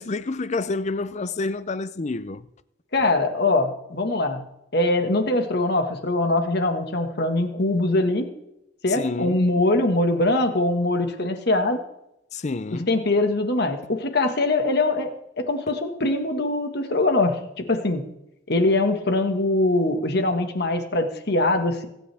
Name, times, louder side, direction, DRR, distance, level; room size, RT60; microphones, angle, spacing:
voice 1, 0.0-2.5 8.9-9.4 12.3-12.9, left 3 dB, 40° left, 0.6 m, -28 dB
voice 2, 2.9-4.4 4.7-8.3 8.8-11.8 12.7-17.4 17.7-18.0 18.5-21.9, left 2 dB, 60° left, 1.7 m, -22 dB
24.0 x 9.9 x 3.5 m
head